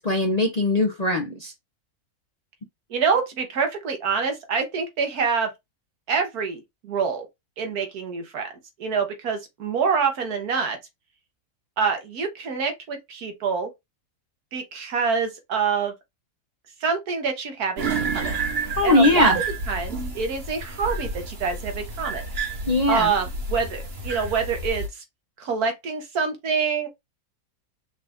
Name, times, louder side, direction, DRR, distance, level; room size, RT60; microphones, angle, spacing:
voice 1, 0.0-1.5 18.8-19.4 22.7-23.1, left 2 dB, 40° left, 0.6 m, -20 dB
voice 2, 2.9-5.5 6.1-7.3 7.6-8.5 8.8-10.8 11.8-13.7 14.5-15.9 16.8-18.3 18.8-19.3 19.7-22.2 22.9-25.0 25.4-26.9, right 5 dB, 80° right, 1.6 m, -26 dB
sound 1, 17.8-24.9, right 3 dB, 45° right, 1.2 m, -30 dB
5.7 x 2.5 x 3.5 m
omnidirectional pair, 1.6 m